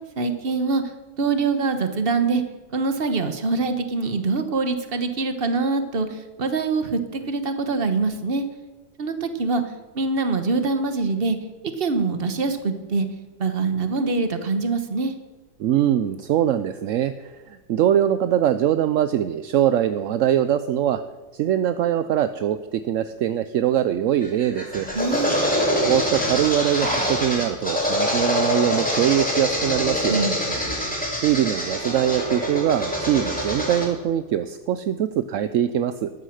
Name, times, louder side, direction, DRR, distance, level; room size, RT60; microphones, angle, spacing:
voice 1, 0.2-0.8 1.2-2.4 2.7-8.4 9.0-9.6 9.9-11.4 11.6-13.1 13.4-15.1 24.9-25.3 30.0-30.4 30.6-30.7, right 4 dB, 40° right, 9 dB, 1.3 m, -24 dB
voice 2, 15.6-21.0 21.3-24.9 25.8-30.2 31.2-36.1, right 10 dB, 65° right, 12 dB, 0.8 m, -22 dB
sound 1, 24.2-33.9, left 1 dB, 5° left, 3.1 m, -25 dB
13.5 x 9.8 x 6.4 m, 1.2 s
omnidirectional pair, 1.7 m